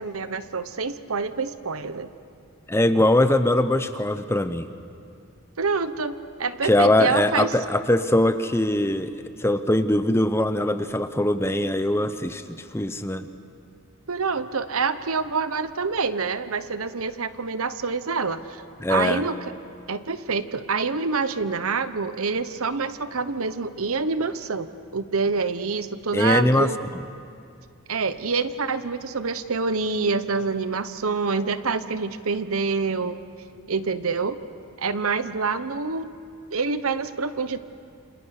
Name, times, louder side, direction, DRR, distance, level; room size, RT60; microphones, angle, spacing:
voice 1, 0.0-2.1 5.6-7.5 14.1-18.6 18.9-19.4 19.9-24.7 24.9-26.8 27.9-33.2 33.7-34.4 34.8-36.1 36.5-37.6, right 4 dB, 80° right, 12 dB, 1.0 m, -26 dB
voice 2, 2.7-4.7 6.6-9.1 9.4-12.4 12.7-13.3 18.8-19.2 26.1-26.7, left 1 dB, 10° left, 10 dB, 0.8 m, -21 dB
28.5 x 27.0 x 6.6 m, 2.4 s
head